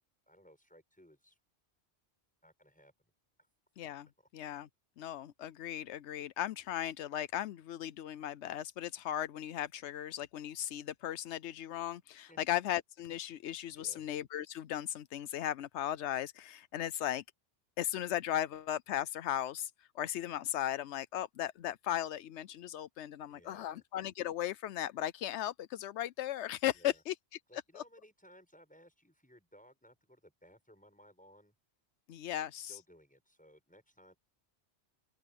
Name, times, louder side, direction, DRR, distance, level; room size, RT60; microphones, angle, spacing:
voice 1, 0.0-1.4 2.4-3.1 4.2-4.3 12.3-12.4 13.8-14.0 23.3-23.8 26.7-27.0 27.5-31.5 32.3-34.2, equal, 5° left, 7.6 m, -61 dB
voice 2, 3.8-4.1 4.3-4.7 5.0-17.2 17.8-27.1 27.7-27.8 32.1-32.8, left 12 dB, 85° left, 0.9 m, -37 dB
open air
omnidirectional pair, 1.2 m